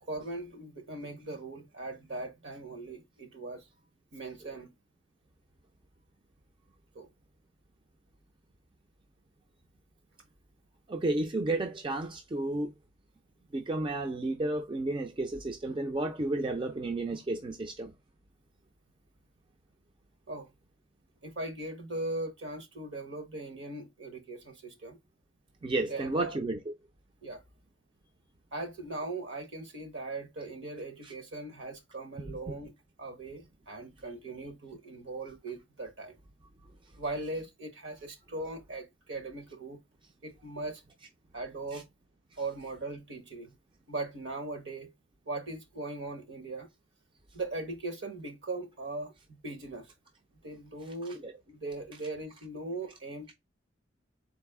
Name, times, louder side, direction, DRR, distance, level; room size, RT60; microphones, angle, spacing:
voice 1, 0.0-3.7 4.1-4.7 6.9-7.1 20.3-20.5 21.2-25.0 25.9-26.3 27.2-27.4 28.5-32.7 33.0-36.2 37.0-39.8 40.2-40.8 41.3-41.9 42.4-43.5 43.9-44.9 45.3-46.7 47.3-49.9 50.4-51.2 51.5-53.3, right 2 dB, 65° right, 1.1 m, -39 dB
voice 2, 10.9-12.7 13.5-17.9 25.6-26.7 41.7-41.8, right 2 dB, 25° right, 0.4 m, -32 dB
4.0 x 2.6 x 3.5 m
head